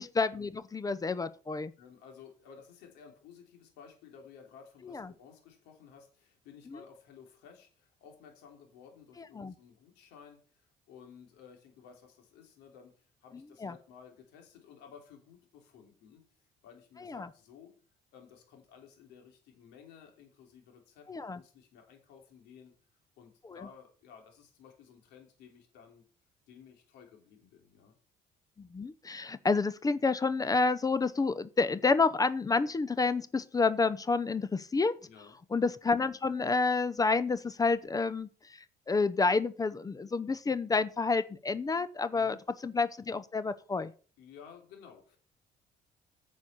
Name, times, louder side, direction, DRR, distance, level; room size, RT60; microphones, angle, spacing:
voice 1, 0.0-1.7 4.8-5.1 9.2-9.5 13.6-13.7 17.0-17.3 21.1-21.4 23.5-23.6 28.6-35.0 35.5-42.4 42.6-43.9, left 4 dB, 20° left, 0.7 m, -29 dB
voice 2, 1.8-16.3 16.6-17.7 18.1-21.1 21.3-22.7 23.2-26.1 26.5-28.0 35.0-35.4 42.1-42.4 44.2-45.2, left 7 dB, 90° left, 3.3 m, -55 dB
9.7 x 6.3 x 5.5 m
cardioid pair, 110°, 17 cm